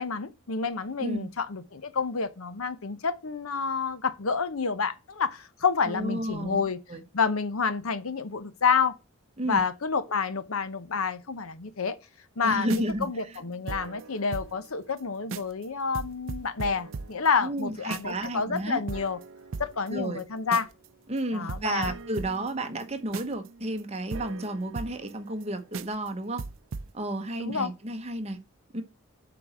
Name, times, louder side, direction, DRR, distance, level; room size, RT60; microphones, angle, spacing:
voice 1, 0.0-6.8 7.1-8.9 9.4-12.0 12.4-19.2 19.6-20.7 21.3-21.9 27.4-27.7, left 5 dB, 90° left, 0.8 m, -29 dB
voice 2, 5.9-7.0 9.4-9.6 12.4-13.1 17.4-18.8 19.9-20.2 21.1-26.4 26.9-28.4 28.7-28.8, right 1 dB, 30° right, 1.0 m, -32 dB
sound 1, 12.6-14.7 15.0-15.1 15.3-15.6 15.9-18.3 18.6-18.7 18.9-20.9 21.2-21.3 21.5-25.4 25.7-26.1 26.4-26.9, right 4 dB, 75° right, 0.5 m, -39 dB
8.3 x 4.0 x 5.9 m
head